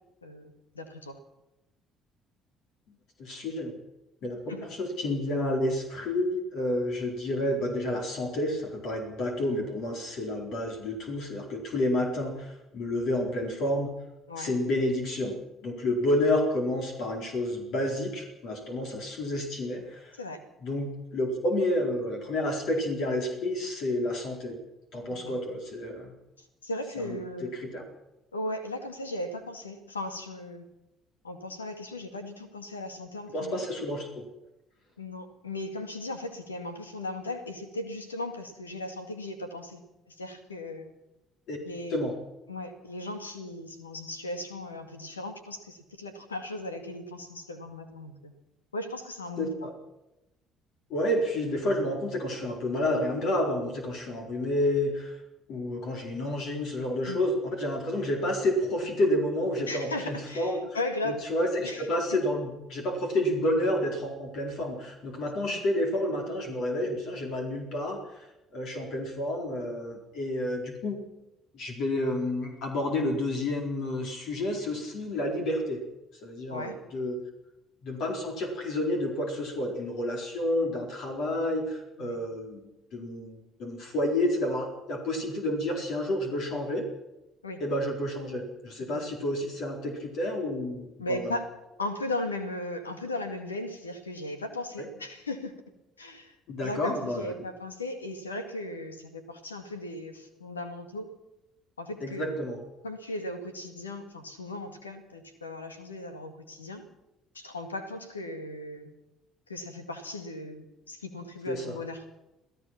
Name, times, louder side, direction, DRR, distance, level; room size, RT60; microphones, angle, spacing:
voice 1, 0.2-1.2 4.5-4.7 14.3-14.6 20.2-20.4 25.1-25.4 26.4-27.5 28.3-30.7 31.2-33.7 35.0-39.8 40.1-40.9 41.6-42.0 42.5-48.3 48.7-49.7 57.1-57.2 59.7-61.2 61.6-62.2 65.5-65.6 76.5-76.8 82.0-82.2 87.4-87.6 88.9-89.0 91.0-91.5 91.8-95.6 96.0-101.1 101.8-102.3 102.8-106.8 107.3-108.9 109.5-112.0, left 1 dB, 85° left, 8 dB, 2.1 m, -37 dB
voice 2, 3.2-3.7 4.2-13.9 14.4-15.4 15.6-20.1 20.6-24.6 24.9-26.1 27.0-27.8 33.3-34.2 41.5-41.6 41.9-42.2 49.4-49.7 50.9-55.2 55.5-60.6 61.0-68.3 68.5-71.0 71.5-75.8 76.2-77.2 77.8-86.8 87.6-91.3 94.8-94.9 96.5-97.3 102.0-102.6 111.5-111.8, left 1 dB, 55° left, 2 dB, 4.4 m, -30 dB
27.0 x 16.0 x 6.0 m, 0.94 s
figure-of-eight pair, 50°, 0 cm